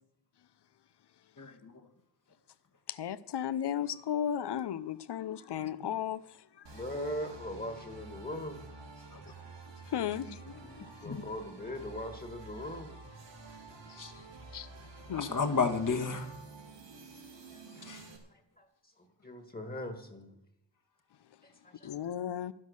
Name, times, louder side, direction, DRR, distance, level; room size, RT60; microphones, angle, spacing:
voice 1, 1.4-1.9 5.8-5.9 9.1-9.3 9.9-11.2 14.0-14.2 15.1-16.3 17.6-18.2, left 4 dB, 45° left, 1.6 m, -34 dB
voice 2, 2.9-6.2 9.9-10.8 13.9-14.0 14.5-14.7 15.1-15.3 21.8-22.5, left 9 dB, 70° left, 0.7 m, -35 dB
sound 1, 6.6-18.2, right 3 dB, 85° right, 2.8 m, -50 dB
voice 3, 6.7-8.6 9.0-9.1 10.9-13.0 17.5-17.6 18.3-18.7 19.0-20.4 21.4-21.9, left 1 dB, 20° left, 1.8 m, -41 dB
12.0 x 11.0 x 6.5 m
wide cardioid pair, 95°, 42 cm